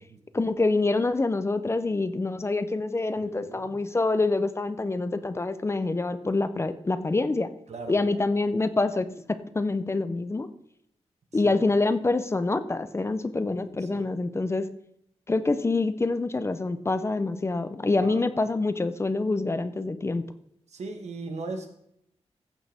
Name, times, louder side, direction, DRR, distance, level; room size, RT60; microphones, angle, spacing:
voice 1, 0.3-7.5 7.9-10.5 11.3-14.7 15.3-20.2, left 3 dB, 25° left, 11 dB, 0.5 m, -26 dB
voice 2, 3.2-3.7 7.7-8.2 13.9-14.1 17.9-18.2 20.7-21.7, right 3 dB, 85° right, 5 dB, 1.5 m, -38 dB
15.0 x 6.5 x 3.5 m, 0.74 s
wide cardioid pair, 175°, 11 cm